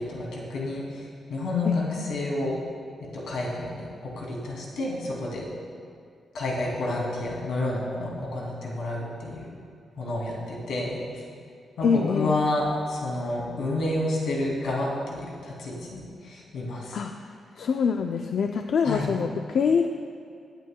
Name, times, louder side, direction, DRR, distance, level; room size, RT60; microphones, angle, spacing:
voice 1, 0.0-2.6 3.1-5.4 6.3-9.5 10.0-11.2 11.8-17.0 18.8-19.1, left 2 dB, 85° left, -3 dB, 2.4 m, -30 dB
voice 2, 11.8-12.3 16.9-17.2 17.6-19.9, left 6 dB, 60° left, 5 dB, 0.3 m, -25 dB
18.5 x 8.3 x 2.2 m, 2.2 s
wide cardioid pair, 140°, 0 cm